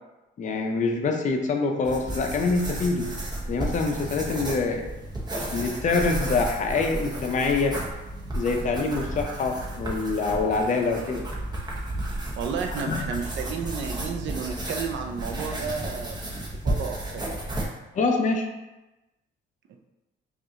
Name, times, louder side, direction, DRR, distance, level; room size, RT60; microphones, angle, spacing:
voice 1, 0.4-3.1 3.5-4.9 5.5-7.8 8.4-11.2 12.9-13.1 17.9-18.5, left 3 dB, 40° left, 3 dB, 0.5 m, -25 dB
sound 1, 1.8-17.7, right 1 dB, 20° right, 1.0 m, -33 dB
voice 2, 12.4-16.2 16.6-17.4, right 6 dB, 70° right, 4 dB, 0.6 m, -32 dB
5.1 x 2.5 x 2.8 m, 1.0 s
cardioid pair, 90°, 20 cm